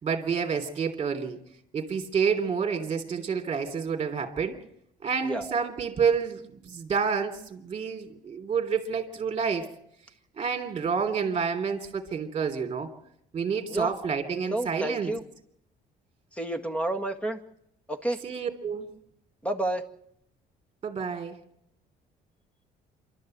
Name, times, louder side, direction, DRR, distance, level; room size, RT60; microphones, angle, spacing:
voice 1, 0.0-1.4 1.7-4.6 5.0-9.7 10.4-12.9 13.3-15.1 18.2-18.9 20.8-21.4, right 6 dB, 35° right, 3.1 m, -29 dB
voice 2, 5.2-5.5 13.7-13.9 14.5-15.2 16.4-17.4 17.9-18.2 19.4-19.8, right 1 dB, 5° left, 1.9 m, -30 dB
27.5 x 12.5 x 7.8 m
cardioid pair, 110°, 17 cm